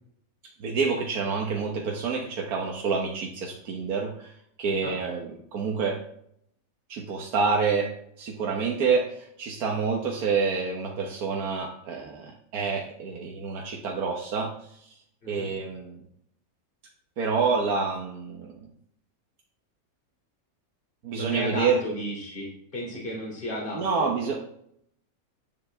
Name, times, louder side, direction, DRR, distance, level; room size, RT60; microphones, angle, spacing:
voice 1, 0.6-4.3 4.6-6.0 6.9-7.9 8.2-14.9 15.3-16.0 17.2-18.6 21.0-21.8 23.7-24.4, right 5 dB, 90° right, 0 dB, 1.6 m, -28 dB
voice 2, 21.1-24.1, equal, 35° left, -2 dB, 3.3 m, -34 dB
10.5 x 10.0 x 3.5 m, 0.70 s
omnidirectional pair, 1.5 m